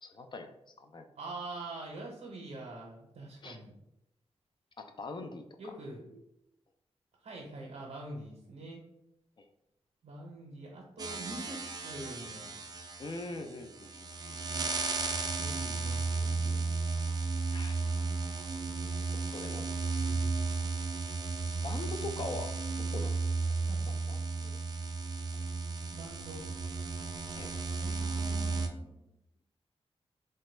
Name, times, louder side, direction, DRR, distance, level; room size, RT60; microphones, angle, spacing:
voice 1, 0.0-1.1 3.4-3.6 4.8-5.7 9.4-9.5 13.0-14.4 17.5-18.0 19.3-19.7 21.6-22.5 22.9-23.2 23.5-24.6 27.4-27.5, left 2 dB, 45° left, 6 dB, 0.4 m, -43 dB
voice 2, 1.1-3.8 5.6-6.2 7.2-8.8 10.0-12.5 15.4-16.7 20.0-20.5 23.7-23.9 25.9-26.4 27.3-29.0, right 2 dB, 80° right, -1 dB, 0.6 m, -45 dB
sound 1, 11.0-28.7, right 3 dB, 35° right, 0.3 m, -34 dB
3.2 x 2.1 x 3.1 m, 0.83 s
wide cardioid pair, 100°, 11 cm